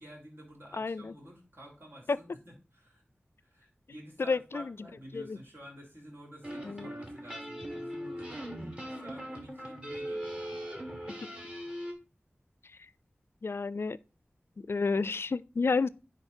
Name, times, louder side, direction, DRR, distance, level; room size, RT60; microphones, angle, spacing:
voice 1, 0.0-3.0 3.4-8.5 9.0-10.4, equal, 60° right, 3.8 m, -50 dB
voice 2, 0.7-1.1 2.1-2.2 4.2-4.7 5.1-5.4 6.6-6.9 13.4-14.0 14.7-15.9, left 4 dB, 70° left, 0.4 m, -30 dB
sound 1, 6.4-11.9, equal, 25° right, 1.9 m, -40 dB
9.9 x 4.1 x 4.4 m
wide cardioid pair, 65°, 4 cm